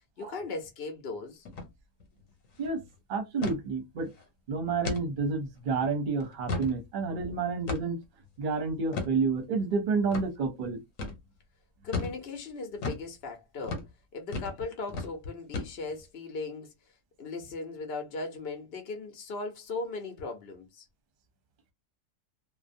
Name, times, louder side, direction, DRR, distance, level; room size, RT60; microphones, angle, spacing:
voice 1, 0.2-1.5 11.8-13.8 14.1-20.9, left 3 dB, 55° left, 0.8 m, -38 dB
sound 1, 1.5-1.7 2.0-2.1 2.4-2.7 3.4-3.6 4.1-4.2 4.8-5.1 5.6-5.7 6.2-6.8 7.7-8.0 8.9-9.1 10.1-10.3 11.0-11.2 11.9-12.2 12.8-13.1 13.6-13.9 14.3-14.6 14.9-15.1 15.5-16.0, left 3 dB, 80° left, 1.1 m, -34 dB
voice 2, 3.1-4.1 4.5-8.0 8.4-10.8, right 4 dB, 45° right, 0.8 m, -29 dB
2.5 x 2.1 x 2.5 m
omnidirectional pair, 1.4 m